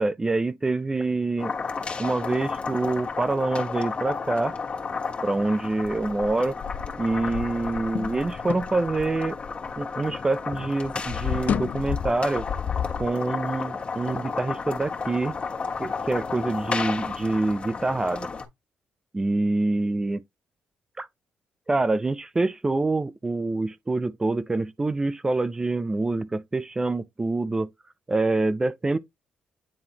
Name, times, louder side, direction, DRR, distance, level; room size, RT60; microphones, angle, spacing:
voice 1, 0.0-1.5 2.0-4.5 5.2-6.6 7.0-9.4 9.8-12.5 13.0-15.3 15.8-18.3 19.1-20.2 21.0-21.1 21.7-27.7 28.1-29.0, right 2 dB, 20° right, 0.4 m, -26 dB
sound 1, 1.4-18.5, left 5 dB, 40° left, 1.6 m, -33 dB
sound 2, 5.8-10.3 10.5-13.1, left 8 dB, 55° left, 0.4 m, -32 dB
9.8 x 3.6 x 2.9 m
cardioid pair, 100°, 3 cm